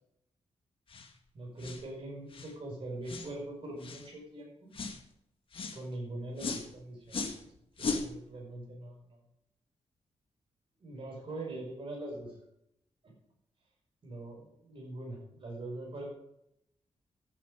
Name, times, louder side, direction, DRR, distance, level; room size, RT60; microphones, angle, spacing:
sound 1, 0.9-1.1 1.6-1.8 2.3-2.5 3.1-3.3 3.8-4.1 4.7-5.0 5.5-5.8 6.4-6.7 7.1-7.4 7.8-8.1, left 4 dB, 50° left, 1.7 m, -37 dB
voice 1, 1.3-4.7 5.7-7.5 7.8-9.2 10.8-12.4 14.0-16.1, right 1 dB, 50° right, -2 dB, 5.5 m, -42 dB
14.0 x 9.1 x 5.0 m, 0.79 s
wide cardioid pair, 120°, 11 cm